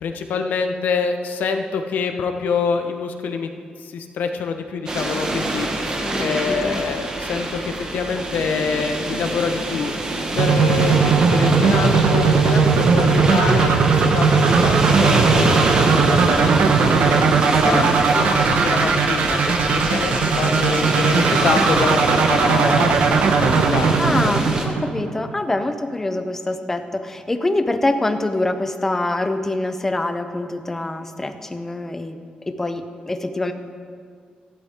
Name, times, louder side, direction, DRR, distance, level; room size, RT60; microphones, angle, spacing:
voice 1, 0.0-3.5 3.8-9.9 10.3-17.2 17.6-19.6 19.9-23.0 23.4-23.9 24.2-24.5, left 5 dB, 80° left, 6 dB, 1.0 m, -26 dB
sound 1, 4.9-24.7, right 2 dB, 25° right, 1.3 m, -25 dB
voice 2, 6.0-6.8 17.6-17.9 24.0-32.2 32.5-33.5, left 2 dB, 15° left, 7 dB, 0.6 m, -25 dB
sound 2, 10.4-25.3, right 5 dB, 70° right, 0.9 m, -18 dB
14.5 x 12.0 x 3.6 m, 2.1 s
wide cardioid pair, 175°, 3 cm